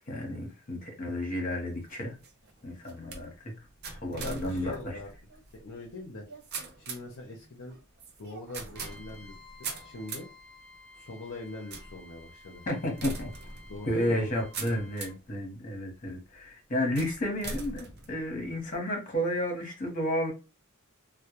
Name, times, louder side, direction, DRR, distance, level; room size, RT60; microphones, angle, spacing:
voice 1, 0.1-2.2 2.6-3.5 4.0-5.0 12.7-13.3 13.9-20.3, left 1 dB, 35° left, 0.8 m, -32 dB
sound 1, 1.7-15.3 15.9-16.3 16.9-18.8, right 4 dB, 45° right, 0.5 m, -43 dB
voice 2, 4.1-5.1 5.6-6.3 6.5-7.8 8.2-9.3 9.6-10.3 10.9-12.7 13.7-14.2, left 2 dB, 55° left, 0.5 m, -42 dB
Trumpet, 8.7-15.1, left 2 dB, 5° left, 0.7 m, -54 dB
2.1 x 2.1 x 2.9 m
head